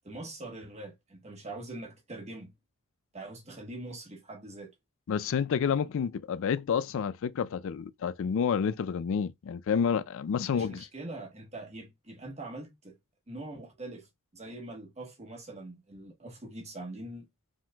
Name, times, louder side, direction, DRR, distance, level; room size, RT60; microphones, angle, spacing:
voice 1, 0.0-2.5 3.1-4.7 10.5-13.0 13.3-14.1 14.3-17.3, right 2 dB, 30° right, 1.3 m, -43 dB
voice 2, 5.1-10.9, left 7 dB, 65° left, 0.4 m, -29 dB
5.1 x 3.6 x 2.3 m
head